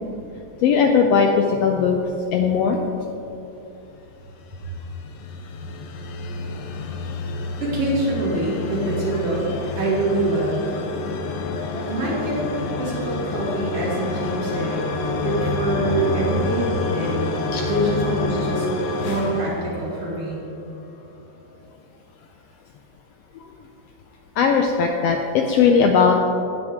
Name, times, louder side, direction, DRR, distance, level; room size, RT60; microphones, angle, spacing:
voice 1, 0.6-2.8 11.6-11.8 17.5-17.7 23.4-23.5 24.4-26.2, left 6 dB, 90° left, 3 dB, 1.4 m, -19 dB
sound 1, 4.4-20.5, left 3 dB, 70° left, 1.7 m, -28 dB
voice 2, 7.6-9.5 9.8-10.6 11.9-14.8 15.2-18.7 19.0-20.4, right 2 dB, 50° right, -6 dB, 3.3 m, -25 dB
17.0 x 6.2 x 3.6 m, 2.8 s
omnidirectional pair, 3.5 m